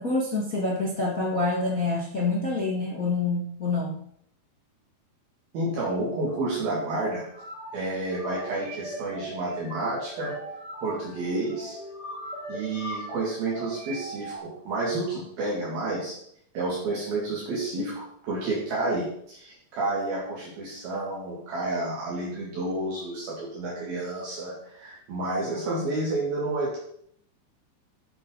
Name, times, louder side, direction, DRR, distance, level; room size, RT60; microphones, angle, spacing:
voice 1, 0.0-4.0, left 3 dB, 60° left, -3 dB, 0.8 m, -27 dB
voice 2, 5.5-7.2 7.7-10.4 10.8-11.8 12.5-16.2 16.5-26.8, right 2 dB, 60° right, -6 dB, 4.1 m, -30 dB
sound 1, 7.1-14.4, right 1 dB, 25° right, 4.2 m, -40 dB
12.5 x 8.5 x 4.0 m, 0.68 s
omnidirectional pair, 4.9 m